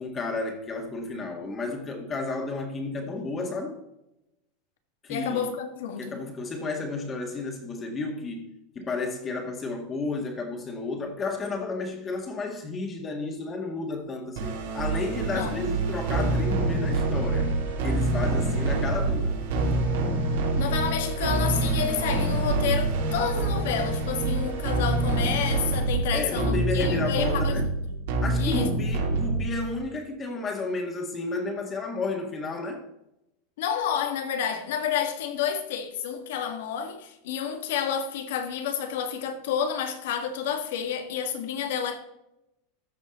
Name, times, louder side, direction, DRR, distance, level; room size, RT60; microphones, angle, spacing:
voice 1, 0.0-3.8 5.0-5.5 6.0-8.5 8.8-17.5 17.8-19.4 26.1-27.7 28.2-32.8, left 3 dB, 25° left, 1.9 m, -32 dB
voice 2, 5.1-6.2 15.3-15.7 20.6-28.0 28.4-28.7 33.6-42.0, left 8 dB, 75° left, 1.5 m, -30 dB
sound 1, 14.4-29.8, right 2 dB, 80° right, 3.1 m, -26 dB
14.0 x 5.2 x 3.9 m
supercardioid pair, 135°, 0 cm